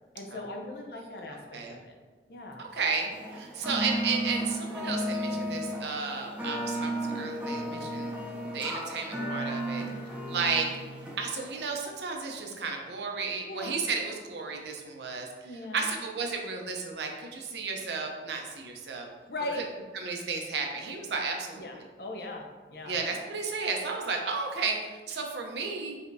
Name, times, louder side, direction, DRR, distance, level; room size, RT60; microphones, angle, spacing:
voice 1, 0.1-2.0 2.3-2.7 7.7-7.9 13.4-13.9 15.4-15.9 19.3-19.6 21.6-23.0, left 2 dB, 60° left, 2 dB, 0.6 m, -39 dB
voice 2, 2.7-3.1 3.4-8.1 8.5-9.8 10.3-10.7 11.2-15.3 15.7-19.1 19.9-21.6 22.9-26.0, right 4 dB, 75° right, 1 dB, 0.7 m, -33 dB
sound 1, 3.1-11.7, right 1 dB, 10° right, 0.5 m, -34 dB
4.9 x 3.3 x 2.6 m, 1.3 s
head